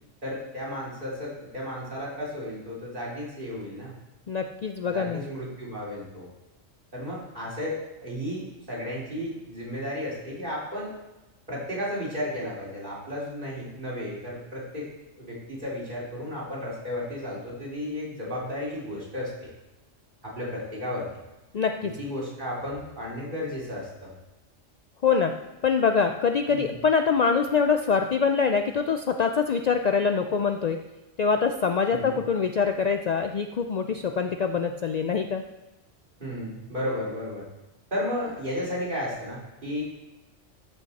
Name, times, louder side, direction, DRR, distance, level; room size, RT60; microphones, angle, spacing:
voice 1, 0.2-3.9 4.9-6.3 6.9-10.9 11.5-14.9 15.2-19.5 20.2-21.1 21.8-24.1 26.4-26.7 31.9-32.2 36.2-37.5 37.9-39.8, left 1 dB, 40° right, -6 dB, 3.1 m, -33 dB
voice 2, 4.3-5.2 21.5-21.9 25.0-25.4 25.6-30.8 31.2-35.4, left 5 dB, 80° left, 6 dB, 0.3 m, -24 dB
13.5 x 5.8 x 4.1 m, 1.0 s
omnidirectional pair, 1.3 m